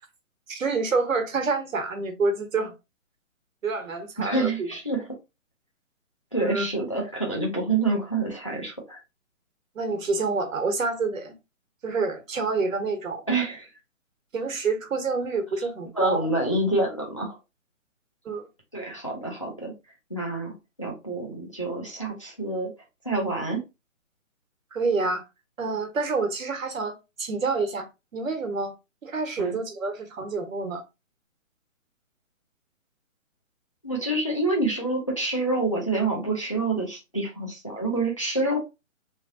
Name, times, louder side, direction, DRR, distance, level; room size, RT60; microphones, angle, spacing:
voice 1, 0.5-2.7 3.6-4.7 6.4-6.7 9.7-11.4 11.8-13.3 14.3-16.4 18.2-18.5 24.7-25.2 25.6-27.9 28.1-28.7 29.0-30.8, right 4 dB, 75° right, 1.1 m, -28 dB
voice 2, 4.2-5.1 6.3-9.0 13.3-13.7 15.9-17.4 18.7-19.7 20.1-20.5 20.8-22.7 23.0-23.6 29.4-29.6 33.8-38.6, right 2 dB, 25° left, 0.5 m, -27 dB
3.2 x 2.2 x 2.6 m
hypercardioid pair, 165°, 41 cm